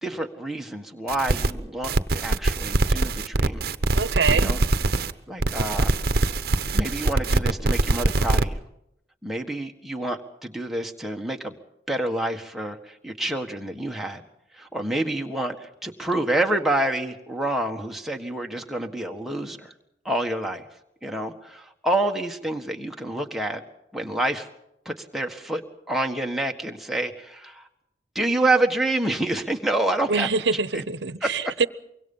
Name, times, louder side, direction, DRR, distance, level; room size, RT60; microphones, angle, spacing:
voice 1, 0.0-3.7 4.3-4.6 5.3-5.9 6.7-8.6 9.2-11.6 11.9-14.2 14.5-19.7 20.0-20.6 21.0-23.6 23.9-24.5 24.8-25.6 25.9-27.7 28.1-30.3 30.7-30.8 31.2-31.3, right 1 dB, ahead, 1.6 m, -28 dB
sound 1, 1.1-1.5 1.8-5.1 5.4-8.4, right 2 dB, 55° right, 0.9 m, -23 dB
voice 2, 3.9-4.5 30.1-31.7, right 4 dB, 85° right, 0.9 m, -24 dB
24.5 x 23.5 x 5.5 m
head